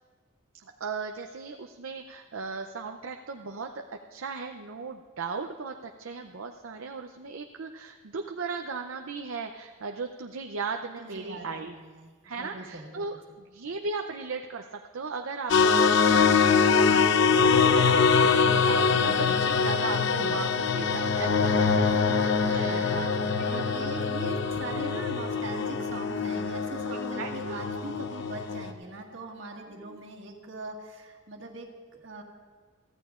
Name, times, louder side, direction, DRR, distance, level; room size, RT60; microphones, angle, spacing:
voice 1, 0.6-3.8 4.1-11.8 12.2-13.2 13.5-21.7 22.5-22.9 23.4-23.6 26.9-27.6 29.8-30.0, right 4 dB, 80° right, 4 dB, 0.6 m, -37 dB
voice 2, 11.0-13.0 19.0-19.4 19.9-20.3 21.7-32.2, right 2 dB, 60° right, 0 dB, 1.7 m, -41 dB
sound 1, 15.5-28.7, left 5 dB, 60° left, 0.6 m, -24 dB
23.0 x 14.5 x 2.5 m, 1.5 s
head